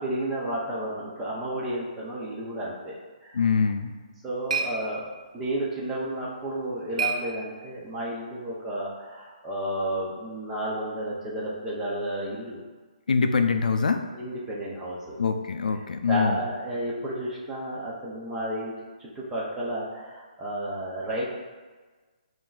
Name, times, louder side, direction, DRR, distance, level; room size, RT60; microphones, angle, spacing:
voice 1, 0.0-3.4 4.2-5.1 5.3-12.6 14.1-15.2 16.1-18.7 19.0-21.2, right 1 dB, 5° right, -6 dB, 0.4 m, -32 dB
voice 2, 3.3-3.9 13.1-14.0 15.2-16.4, left 5 dB, 75° left, 7 dB, 0.4 m, -24 dB
sound 1, 3.7-8.0, right 5 dB, 50° right, 0.6 m, -35 dB
7.4 x 2.5 x 2.3 m, 1.3 s
hypercardioid pair, 175°, 4 cm